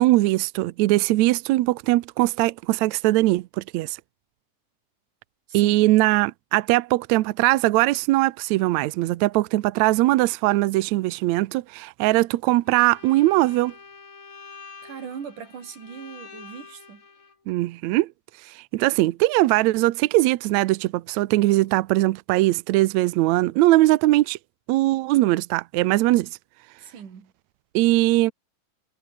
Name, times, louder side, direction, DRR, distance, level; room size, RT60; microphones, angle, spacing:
voice 1, 0.0-4.0 5.5-13.7 17.5-18.1 18.5-24.4 24.7-26.3 27.7-28.3, right 18 dB, 80° right, 1.6 m, -20 dB
Bowed string instrument, 12.7-17.4, left 5 dB, 50° left, 6.0 m, -46 dB
voice 2, 14.8-17.0 26.8-27.3, right 7 dB, 65° right, 4.6 m, -39 dB
omnidirectional pair, 4.0 m